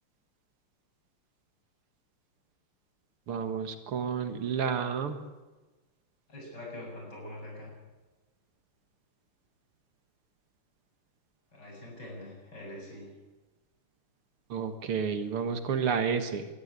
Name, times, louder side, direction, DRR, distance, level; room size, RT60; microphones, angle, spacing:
voice 1, 3.3-5.2 14.5-16.5, right 6 dB, 85° right, 8 dB, 2.5 m, -30 dB
voice 2, 6.3-7.7 11.5-13.1, left 1 dB, 50° left, -1 dB, 8.2 m, -44 dB
21.0 x 13.0 x 9.7 m, 1.2 s
omnidirectional pair, 2.4 m